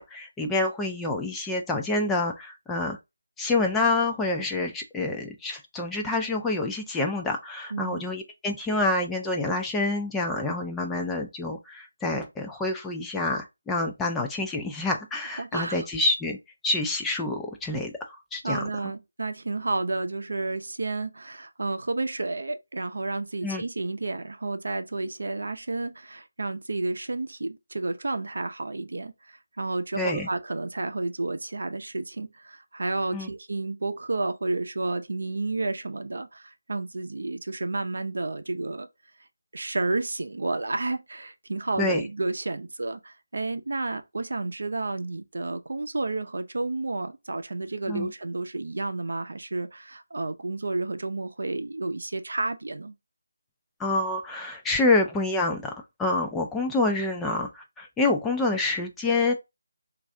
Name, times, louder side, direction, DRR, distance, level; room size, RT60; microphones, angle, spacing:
voice 1, 0.0-3.0 3.4-16.4 16.6-18.6 23.4-23.6 30.0-30.3 33.1-33.3 41.8-42.0 47.9-48.1 53.8-55.7 56.0-59.3, left 2 dB, 5° left, 0.3 m, -27 dB
voice 2, 7.7-8.0 15.4-15.9 18.4-38.9 39.5-52.9, right 2 dB, 70° right, 0.5 m, -31 dB
3.2 x 2.4 x 3.5 m
figure-of-eight pair, 165°, 0 cm